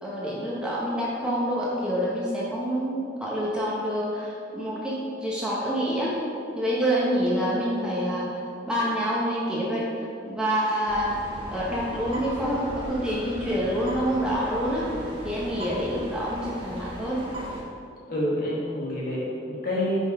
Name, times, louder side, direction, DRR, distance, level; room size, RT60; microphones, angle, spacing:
voice 1, 0.0-6.2 6.6-9.9 10.3-11.1 11.5-14.9 15.2-17.2, equal, 5° right, -7 dB, 0.8 m, -27 dB
sound 1, 10.8-17.6, equal, 25° right, 1.1 m, -38 dB
voice 2, 18.1-20.0, left 1 dB, 50° left, -5 dB, 1.6 m, -28 dB
5.4 x 4.3 x 5.3 m, 2.5 s
head